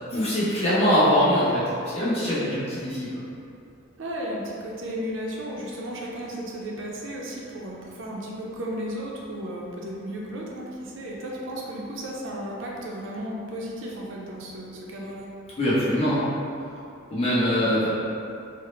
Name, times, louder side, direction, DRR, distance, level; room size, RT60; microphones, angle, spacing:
voice 1, 0.1-3.1 15.6-16.3 17.1-17.9, equal, 30° left, -10 dB, 0.9 m, -22 dB
voice 2, 4.0-15.3, equal, 70° right, -3 dB, 0.5 m, -34 dB
3.8 x 2.1 x 3.1 m, 2.6 s
head